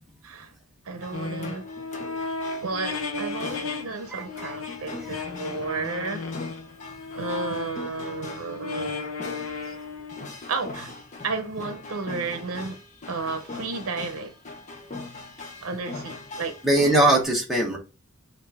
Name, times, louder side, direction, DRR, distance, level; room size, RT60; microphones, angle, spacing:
voice 1, 0.8-1.6 2.6-6.3 7.1-9.0 10.5-10.9 11.2-12.8 13.1-14.4 15.6-16.6, right 4 dB, 90° right, 0.7 m, -32 dB
sound 1, 1.0-17.2, left 3 dB, 35° left, 0.8 m, -41 dB
sound 2, 1.1-3.9 4.1-10.3, left 3 dB, 90° left, 0.8 m, -34 dB
voice 2, 3.9-4.6 16.6-17.8, right 1 dB, ahead, 1.1 m, -22 dB
5.3 x 2.6 x 3.4 m
head